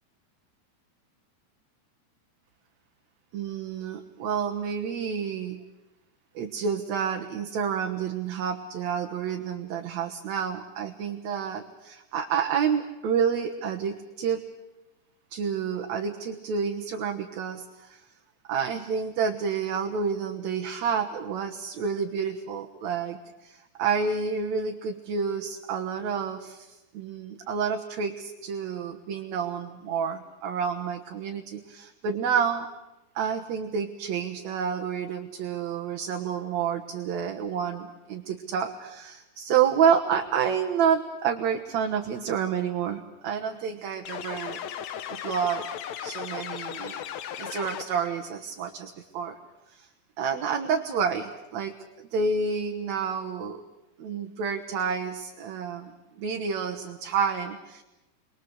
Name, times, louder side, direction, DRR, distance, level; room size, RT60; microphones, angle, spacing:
voice 1, 3.3-5.6 6.3-14.4 15.3-18.0 18.5-32.7 33.2-44.6 45.1-45.7 46.0-47.0 47.4-49.4 49.7-49.9 50.2-51.7 52.1-53.6 54.0-55.9 56.2-57.8, right 6 dB, 60° right, 2 dB, 2.4 m, -29 dB
sound 1, 44.1-48.2, left 9 dB, 65° left, 2.0 m, -36 dB
29.5 x 23.0 x 8.0 m, 1.0 s
omnidirectional pair, 4.0 m